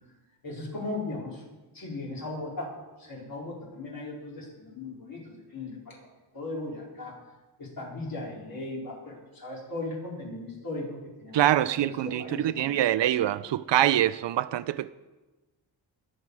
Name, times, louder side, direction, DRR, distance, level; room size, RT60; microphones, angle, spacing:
voice 1, 0.4-1.4 1.7-2.7 3.0-6.0 6.3-7.2 7.6-12.7, left 2 dB, 50° left, 4.4 m, -37 dB
voice 2, 11.3-14.9, right 12 dB, 70° right, 0.6 m, -25 dB
21.0 x 8.0 x 4.8 m
wide cardioid pair, 125°, 45 cm